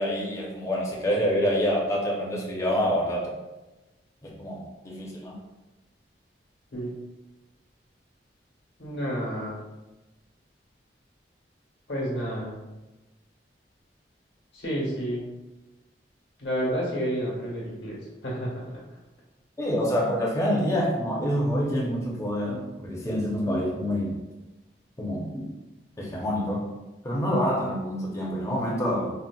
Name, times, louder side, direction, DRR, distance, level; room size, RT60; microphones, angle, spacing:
voice 1, 0.0-3.3 4.2-5.4 19.6-24.2 25.0-25.4 26.0-26.6 27.0-29.1, equal, 15° left, -3 dB, 0.5 m, -27 dB
voice 2, 8.8-9.6 11.9-12.6 14.5-15.2 16.4-18.0 18.2-18.7, equal, 85° left, -5 dB, 1.0 m, -30 dB
3.8 x 2.0 x 2.3 m, 1.1 s
head